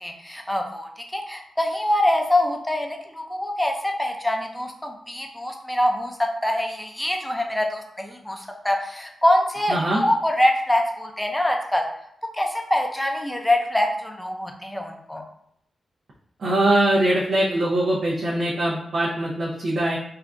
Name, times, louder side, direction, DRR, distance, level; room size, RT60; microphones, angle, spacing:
voice 1, 0.0-3.7 4.0-6.2 6.4-11.8 12.3-15.2, left 1 dB, 10° left, 2 dB, 0.6 m, -24 dB
voice 2, 9.7-10.0 16.4-20.0, right 1 dB, 70° right, -6 dB, 0.7 m, -22 dB
3.6 x 2.4 x 2.3 m, 0.71 s
cardioid pair, 65°, 0 cm